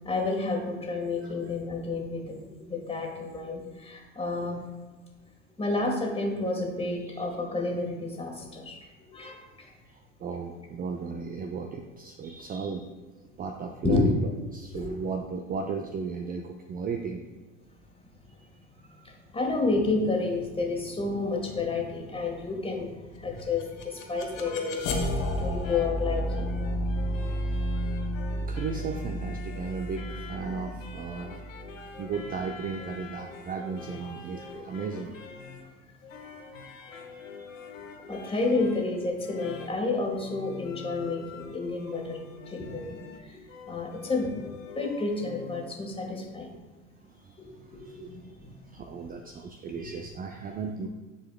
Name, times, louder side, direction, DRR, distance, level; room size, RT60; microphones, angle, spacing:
voice 1, 0.0-4.6 5.6-8.8 9.1-9.7 13.8-14.1 14.7-15.0 19.0-22.9 23.2-26.5 38.1-42.2 42.5-43.4 43.7-44.3 44.7-46.5 47.4-48.5 49.8-49.9, left 3 dB, 15° left, 0 dB, 1.6 m, -30 dB
voice 2, 9.9-12.9 13.4-17.2 18.4-18.5 18.9-19.1 27.3-27.6 28.5-31.4 32.0-35.3 37.0-37.5 41.9-42.0 47.0-47.4 47.6-50.9, right 5 dB, 25° right, 3 dB, 0.5 m, -36 dB
sound 1, 23.4-32.3, equal, 55° left, 1.3 m, -32 dB
sound 2, 25.6-45.6, left 5 dB, 80° left, 1.0 m, -45 dB
11.0 x 4.7 x 2.3 m, 1.2 s
figure-of-eight pair, 70°, 38 cm